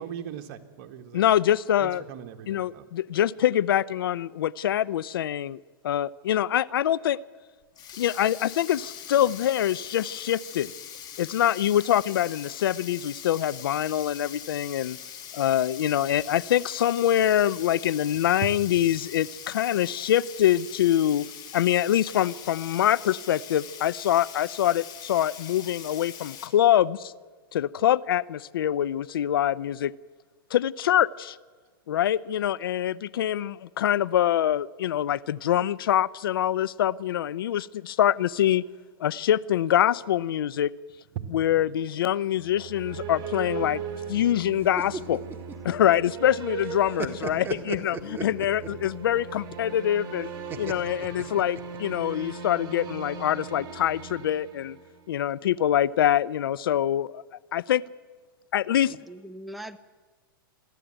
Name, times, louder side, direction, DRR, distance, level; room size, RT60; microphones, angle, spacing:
voice 1, 0.0-1.2 1.8-2.9 18.4-18.5 41.2-41.9, right 9 dB, 50° right, 7 dB, 1.8 m, -38 dB
voice 2, 1.1-2.0 2.5-7.2 8.0-10.7 11.2-15.0 15.3-21.2 21.5-27.1 27.5-29.9 30.5-31.4 31.9-38.6 39.0-40.7 41.3-43.8 44.1-45.2 45.6-50.3 50.6-54.8 55.1-57.2 57.5-57.8 58.5-59.0, left 11 dB, 75° left, 20 dB, 0.6 m, -24 dB
Sink (filling or washing), 7.6-26.5, left 9 dB, 35° left, 2.6 m, -42 dB
sound 1, 42.3-55.2, right 6 dB, 35° right, 4.6 m, -39 dB
sound 2, 44.6-46.3 46.6-48.8 50.5-51.9, right 5 dB, 20° right, 1.8 m, -36 dB
voice 3, 48.0-48.4 58.9-59.8, right 1 dB, ahead, 9 dB, 0.8 m, -41 dB
27.0 x 11.0 x 9.0 m, 1.4 s
hypercardioid pair, 120°, 12 cm